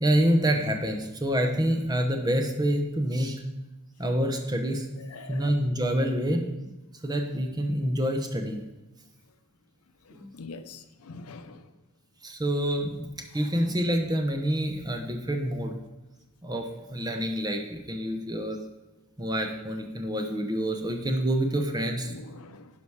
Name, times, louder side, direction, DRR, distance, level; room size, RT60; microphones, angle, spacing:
voice 1, 0.0-3.4 4.0-4.9 5.3-6.4 7.0-8.6 10.1-10.3 12.2-13.1 13.3-15.8 16.4-18.6 19.2-22.1, equal, 20° right, 0.8 m, -27 dB
voice 2, 5.1-5.5 10.1-11.6 22.1-22.7, left 3 dB, 90° left, 0.6 m, -44 dB
11.0 x 5.1 x 4.7 m
head